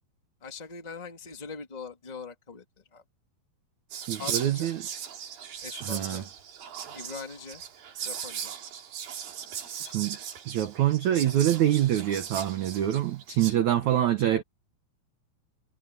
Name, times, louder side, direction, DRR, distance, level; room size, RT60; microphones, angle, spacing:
voice 1, 0.4-3.0 4.2-4.7 5.6-6.3 6.9-7.6 8.0-8.5 13.8-14.2, left 5 dB, 15° left, 1.8 m, -42 dB
Whispering, 3.9-13.5, right 8 dB, 60° right, 3.9 m, -38 dB
voice 2, 4.1-4.9 5.8-6.2 9.8-10.2 10.4-14.4, right 11 dB, 80° right, 1.6 m, -25 dB
omnidirectional pair, 5.0 m